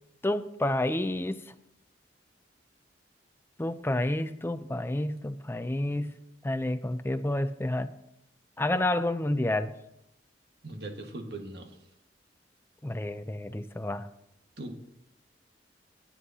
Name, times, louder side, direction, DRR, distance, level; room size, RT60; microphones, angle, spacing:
voice 1, 0.2-1.4 3.6-7.9 8.6-9.7 12.8-14.1, left 1 dB, 15° left, 11 dB, 0.5 m, -30 dB
voice 2, 10.6-11.8 14.6-14.8, right 2 dB, 65° right, 3 dB, 1.6 m, -40 dB
17.5 x 9.8 x 2.8 m, 0.81 s
head